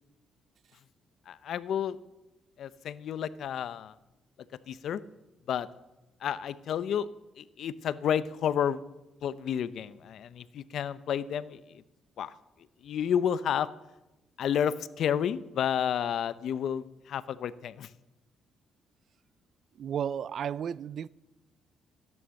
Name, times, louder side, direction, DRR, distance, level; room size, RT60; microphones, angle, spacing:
voice 1, 1.3-2.0 2.6-3.9 4.7-5.0 5.5-5.7 6.2-7.1 7.4-8.8 9.2-11.6 12.2-12.3 12.8-13.7 14.4-17.9, left 9 dB, 70° left, 0.7 m, -30 dB
voice 2, 19.8-21.1, right 8 dB, 60° right, 0.4 m, -33 dB
15.5 x 10.5 x 7.7 m
cardioid pair, 90°, 0 cm